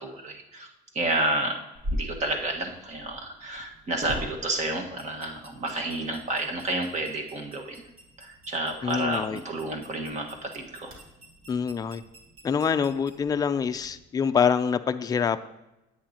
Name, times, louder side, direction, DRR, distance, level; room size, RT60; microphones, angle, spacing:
voice 1, 0.0-0.7 0.9-1.5 1.9-7.8 8.2-10.9, right 2 dB, 45° right, 2 dB, 1.5 m, -30 dB
sound 1, 1.7-14.0, equal, 60° right, 2.1 m, -42 dB
voice 2, 8.8-9.4 11.5-12.0 12.4-15.5, left 6 dB, 20° left, 9 dB, 0.4 m, -25 dB
10.0 x 8.0 x 2.9 m, 0.97 s
cardioid pair, 110°, 17 cm